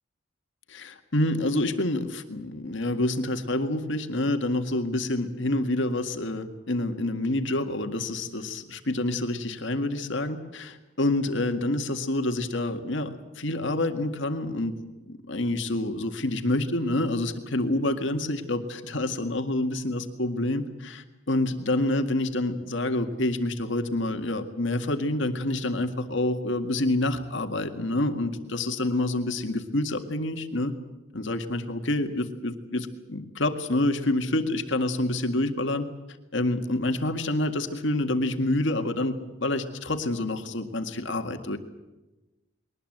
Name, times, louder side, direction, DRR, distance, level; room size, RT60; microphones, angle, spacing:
voice 1, 0.7-14.7 15.1-30.7 31.1-35.9 36.3-41.6, left 1 dB, 60° left, 7 dB, 1.9 m, -27 dB
22.0 x 19.5 x 8.0 m, 1.1 s
head